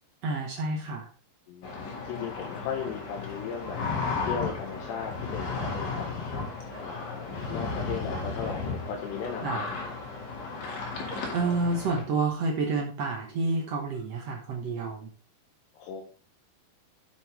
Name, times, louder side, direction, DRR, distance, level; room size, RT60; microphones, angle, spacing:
voice 1, 0.2-1.1 9.4-9.6 11.3-15.1, right 3 dB, 85° right, 0 dB, 1.4 m, -29 dB
voice 2, 1.5-3.8 4.2-6.2 6.8-9.9 15.7-16.0, left 7 dB, 85° left, 1 dB, 3.4 m, -37 dB
sound 1, 1.6-12.0, left 4 dB, 55° left, 3.5 m, -34 dB
Dog, 3.5-3.9 4.2-4.3 4.6-6.0 6.3-6.4 6.7-6.9 7.3-8.7 9.1-9.2 9.5-9.9 10.4-10.5 11.0-11.8 12.3-12.4, right 4 dB, 25° right, 2.9 m, -47 dB
11.0 x 7.1 x 3.4 m, 0.38 s
omnidirectional pair, 4.9 m